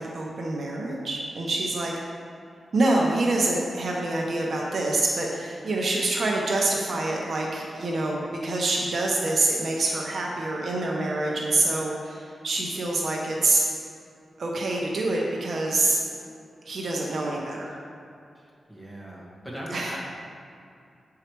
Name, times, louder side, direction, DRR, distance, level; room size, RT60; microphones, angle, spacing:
voice 1, 0.0-1.9 2.7-13.6 14.4-16.0 16.6-17.8 19.7-19.9, right 2 dB, 50° right, -2 dB, 0.8 m, -26 dB
voice 2, 18.3-20.0, equal, 5° left, -5 dB, 1.5 m, -40 dB
8.0 x 4.8 x 4.5 m, 2.5 s
wide cardioid pair, 160°, 0 cm